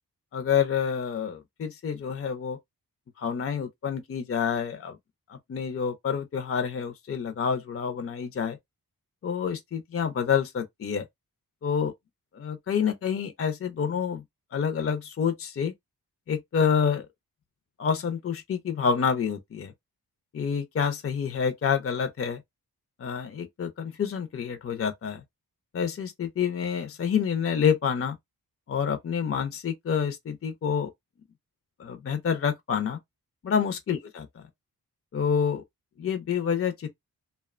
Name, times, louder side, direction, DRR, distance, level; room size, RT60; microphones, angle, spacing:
voice 1, 0.3-2.6 3.2-5.0 5.3-8.6 9.2-11.1 11.6-11.9 12.3-14.2 14.5-15.7 16.3-17.1 17.8-19.7 20.3-22.4 23.0-25.2 25.7-28.2 28.7-30.9 31.8-33.0 33.4-34.3 35.1-35.6 36.0-36.9, left 7 dB, 40° left, 0.5 m, -28 dB
2.7 x 2.1 x 2.4 m
cardioid pair, 70°, 38 cm